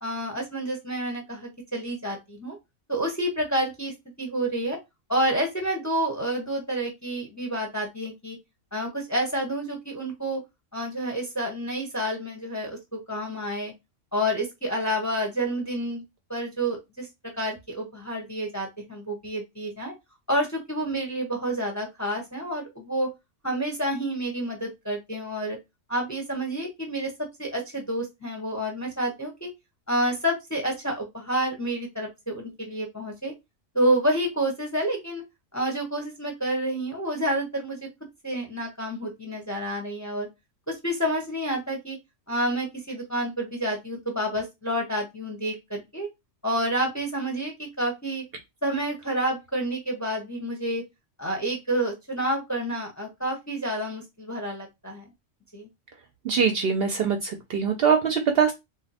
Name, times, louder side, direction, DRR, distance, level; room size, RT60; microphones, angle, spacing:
voice 1, 0.0-2.6 2.9-3.9 4.2-4.8 5.1-8.4 8.7-10.4 10.7-13.7 14.1-16.0 16.3-17.1 17.4-19.9 20.3-23.1 23.4-25.6 25.9-27.1 27.4-29.5 29.9-33.3 33.7-35.2 35.5-37.9 38.2-40.3 40.7-42.0 42.3-46.1 46.4-48.2 48.6-50.8 51.2-55.0 55.5-55.7, right 1 dB, 20° left, 1 dB, 0.6 m, -29 dB
voice 2, 56.2-58.5, right 6 dB, 60° right, 5 dB, 0.7 m, -23 dB
2.6 x 2.1 x 4.0 m, 0.21 s
omnidirectional pair, 1.3 m